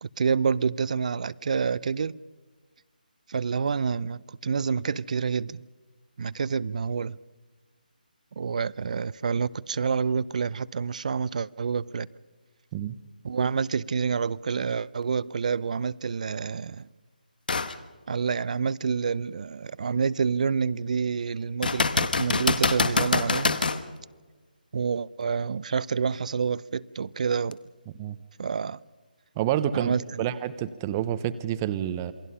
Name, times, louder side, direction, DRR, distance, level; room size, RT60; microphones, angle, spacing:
voice 1, 0.0-2.2 3.3-5.6 6.2-7.2 8.4-12.1 13.2-16.9 18.1-23.6 24.7-27.6 28.4-28.8 29.7-30.3, right 5 dB, 50° right, 0.6 m, -28 dB
sound 1, 17.5-17.8 18.3-18.4 21.6-23.8 27.5-27.6, left 4 dB, 65° left, 1.5 m, -25 dB
voice 2, 29.4-32.1, right 11 dB, 20° right, 0.8 m, -28 dB
27.5 x 22.5 x 5.6 m
figure-of-eight pair, 160°, 5 cm